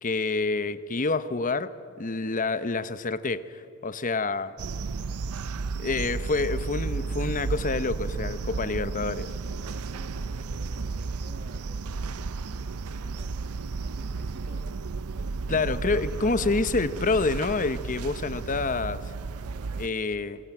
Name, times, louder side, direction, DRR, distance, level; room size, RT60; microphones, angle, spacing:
voice 1, 0.0-4.5 5.8-9.3 15.5-19.0 19.8-20.4, left 3 dB, 35° left, 14 dB, 0.9 m, -28 dB
sound 1, 4.6-19.9, right 4 dB, 80° right, 0.6 m, -33 dB
voice 2, 9.6-14.7 15.1-16.3 19.3-20.3, right 1 dB, 45° right, 7 dB, 2.2 m, -50 dB
28.0 x 20.0 x 9.0 m, 2.6 s
head